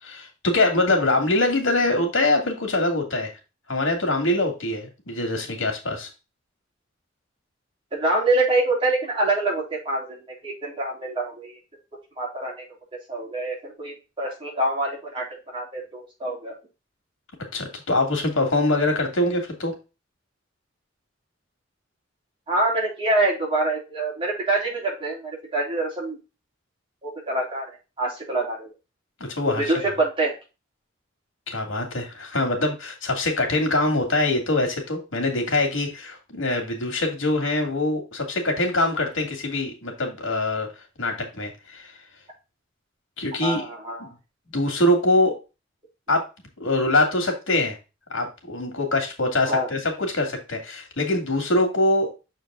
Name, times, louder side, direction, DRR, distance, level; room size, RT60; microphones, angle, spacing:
voice 1, 0.0-3.3 3.7-6.1 17.5-19.7 29.2-29.7 31.5-40.7 41.0-42.0 43.2-43.6 44.0-44.1 44.5-45.3 46.1-46.3 46.6-47.8 48.1-52.1, left 2 dB, 90° left, 3 dB, 2.4 m, -23 dB
voice 2, 7.9-11.6 12.2-12.6 13.1-16.6 22.5-26.2 27.0-28.7 29.6-30.3 43.4-44.1 49.4-49.7, right 2 dB, 25° right, -3 dB, 3.5 m, -25 dB
7.0 x 4.5 x 3.7 m, 0.29 s
head